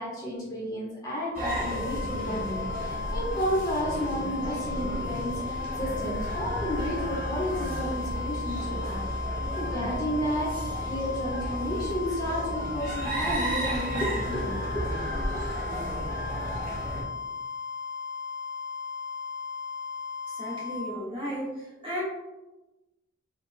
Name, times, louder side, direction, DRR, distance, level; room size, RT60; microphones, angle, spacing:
voice 1, 0.0-15.5, equal, 20° left, -6 dB, 1.1 m, -32 dB
sound 1, 1.3-20.9, left 5 dB, 10° right, 1.4 m, -36 dB
sound 2, 1.3-17.0, right 1 dB, 45° right, 0.9 m, -33 dB
voice 2, 20.3-22.0, equal, 25° right, -7 dB, 1.4 m, -35 dB
4.2 x 3.6 x 2.2 m, 1.1 s
head